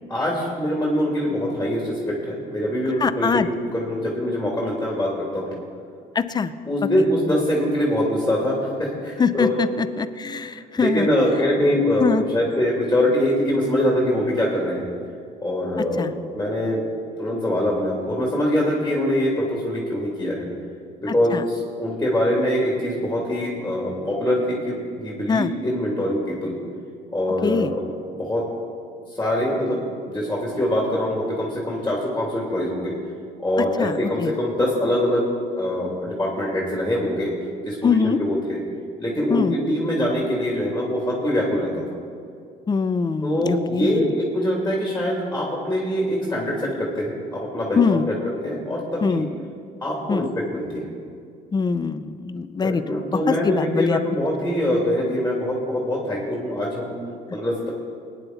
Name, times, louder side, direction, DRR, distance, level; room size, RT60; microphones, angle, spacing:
voice 1, 0.1-5.5 6.7-9.6 10.5-14.9 15.4-16.1 16.3-16.8 17.2-20.5 21.0-26.6 27.1-27.8 28.1-28.4 29.1-29.8 30.0-32.9 33.4-35.3 35.5-37.3 37.6-38.6 39.0-41.8 43.2-48.1 48.4-49.2 49.8-50.8 52.6-57.0 57.3-57.7, left 1 dB, 10° left, -4 dB, 2.9 m, -23 dB
voice 2, 3.0-3.5 6.1-6.5 9.2-11.1 12.0-12.2 16.0-16.1 21.3-21.4 25.3-25.5 27.4-27.7 33.8-34.3 37.8-38.2 39.3-39.5 42.7-44.0 47.8-48.0 49.0-49.3 50.1-50.3 51.5-54.0, left 5 dB, 25° left, 12 dB, 0.6 m, -23 dB
20.0 x 9.9 x 4.2 m, 2.3 s
cardioid pair, 110°, 17 cm